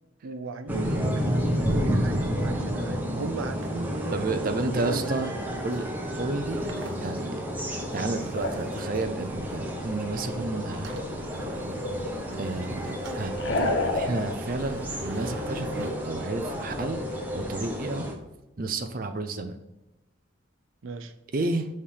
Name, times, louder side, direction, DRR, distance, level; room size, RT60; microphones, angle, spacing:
voice 1, 0.2-5.2 20.8-21.1, right 3 dB, 85° right, 9 dB, 0.5 m, -37 dB
sound 1, 0.7-18.1, equal, 10° right, 0.9 m, -31 dB
sound 2, 3.6-15.9, right 2 dB, 70° right, 0.9 m, -46 dB
voice 2, 4.1-5.3 5.6-5.9 6.2-6.7 7.0-11.0 12.4-17.0 17.3-18.1 18.6-19.6 21.3-21.7, right 2 dB, 45° right, 6 dB, 0.5 m, -31 dB
sound 3, 8.4-17.3, left 2 dB, 60° left, 0.8 m, -35 dB
5.6 x 4.3 x 4.9 m, 0.99 s
head